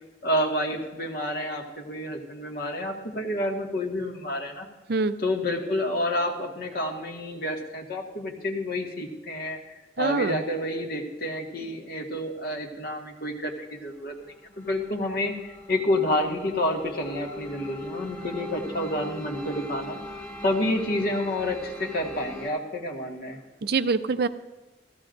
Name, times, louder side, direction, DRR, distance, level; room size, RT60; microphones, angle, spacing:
voice 1, 0.2-4.7 5.2-14.1 14.6-20.0 20.4-23.4, left 1 dB, 60° left, 1 dB, 1.8 m, -29 dB
voice 2, 10.0-10.4 23.6-24.3, right 4 dB, 60° right, 12 dB, 0.5 m, -24 dB
sound 1, 14.0-22.5, left 1 dB, 15° left, 2.2 m, -41 dB
15.5 x 15.5 x 2.6 m, 1.1 s
head